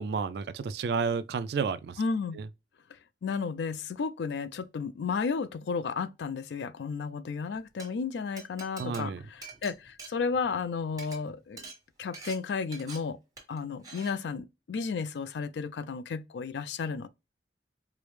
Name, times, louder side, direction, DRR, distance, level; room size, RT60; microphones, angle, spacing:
voice 1, 0.0-2.0 2.3-2.5 8.8-9.3, right 5 dB, 65° right, 0.3 m, -31 dB
voice 2, 2.0-2.4 3.2-11.6 12.0-13.2 13.5-17.1, left 5 dB, 80° left, 0.4 m, -33 dB
Glass, 7.6-7.9 8.4-10.6 10.9-11.2 11.6-11.8 12.1-12.4 12.7-13.0 13.4-13.6 13.8-14.1, right 3 dB, 20° right, 1.2 m, -45 dB
4.7 x 2.0 x 3.1 m
head